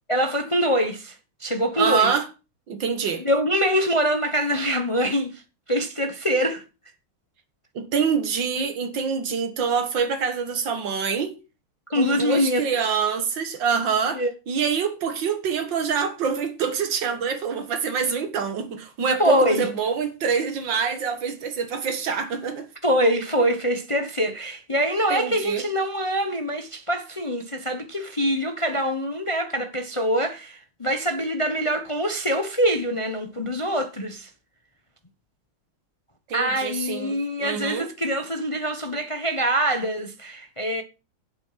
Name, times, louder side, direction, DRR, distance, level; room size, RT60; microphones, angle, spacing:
voice 1, 0.1-2.1 3.2-5.4 5.7-6.6 11.9-12.6 14.1-14.3 19.2-19.7 22.8-34.3 36.3-40.8, equal, 30° left, 0.5 m, -24 dB
voice 2, 1.8-2.3 2.7-3.3 7.8-11.4 12.0-22.7 25.1-25.6 36.3-37.9, right 6 dB, 60° right, 2.2 m, -25 dB
8.6 x 7.9 x 5.7 m
omnidirectional pair, 2.3 m